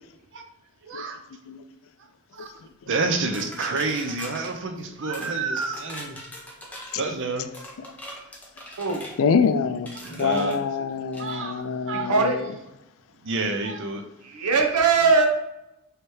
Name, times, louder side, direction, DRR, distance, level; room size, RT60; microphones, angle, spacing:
voice 1, 0.8-1.2 2.3-2.5 2.9-6.2 6.9-7.5 10.0-10.6 11.2-12.1 13.2-14.0, right 3 dB, 55° right, 6 dB, 0.5 m, -29 dB
sound 1, 3.3-4.5 5.1-5.3 5.6-7.0 7.5-9.2 9.9-10.6 11.1-11.4, left 1 dB, 5° left, 0.7 m, -41 dB
voice 2, 5.0-5.8 8.8-9.1 12.0-12.4 14.2-15.3, right 4 dB, 90° right, 2 dB, 0.8 m, -22 dB
voice 3, 9.2-12.5, left 5 dB, 60° left, 11 dB, 0.3 m, -25 dB
3.2 x 3.1 x 4.4 m, 0.90 s
head